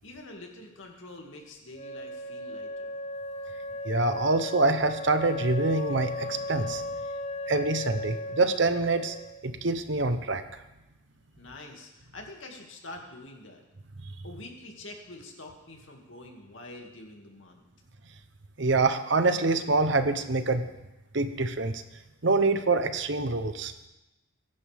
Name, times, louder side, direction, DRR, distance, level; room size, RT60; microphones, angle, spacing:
voice 1, 0.0-2.9 11.4-13.6 14.2-17.6, left 2 dB, 70° left, 1 dB, 2.4 m, -46 dB
Wind instrument woodwind instrument, 1.7-9.5, left 1 dB, 30° left, 0.7 m, -36 dB
voice 2, 3.8-6.8 7.5-9.2 9.4-10.4 18.6-20.6 21.1-21.8 22.2-23.7, right 3 dB, 60° right, 9 dB, 0.9 m, -25 dB
23.0 x 11.0 x 3.6 m, 0.99 s
head